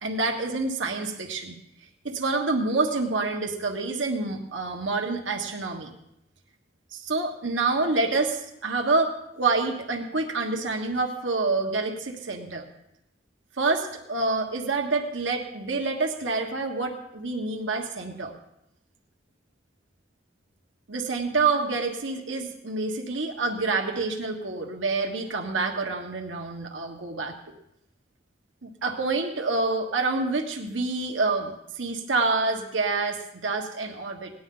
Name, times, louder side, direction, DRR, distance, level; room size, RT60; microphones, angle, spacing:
voice 1, 0.0-1.6 2.0-5.9 6.9-12.7 13.6-18.3 20.9-27.4 28.6-34.3, right 3 dB, 80° right, 2 dB, 1.5 m, -27 dB
18.5 x 11.0 x 3.9 m, 0.83 s
head